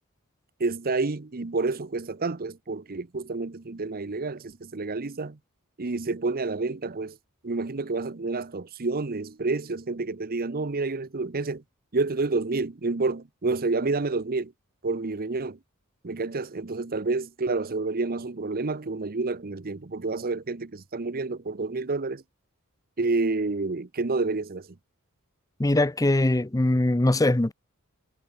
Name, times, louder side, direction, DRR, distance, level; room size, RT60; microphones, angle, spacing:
voice 1, 0.6-5.4 5.8-7.2 7.4-11.6 11.9-14.5 14.8-15.6 16.0-22.2 23.0-24.7, right 3 dB, 40° right, 0.8 m, -29 dB
voice 2, 25.6-27.5, left 1 dB, 15° left, 0.6 m, -22 dB
head